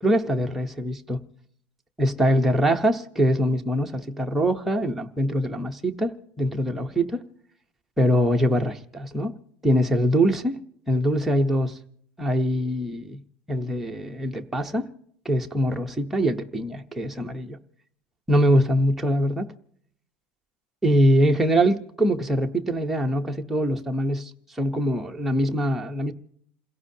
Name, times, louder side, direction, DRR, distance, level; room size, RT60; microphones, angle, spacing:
voice 1, 0.0-1.2 2.0-7.2 8.0-9.3 9.6-10.5 10.9-11.8 12.2-13.2 13.5-14.9 15.2-17.6 18.3-19.5 20.8-24.3 24.6-26.1, equal, 5° right, 0.9 m, -23 dB
28.5 x 17.0 x 2.8 m
cardioid pair, 175°, 6 cm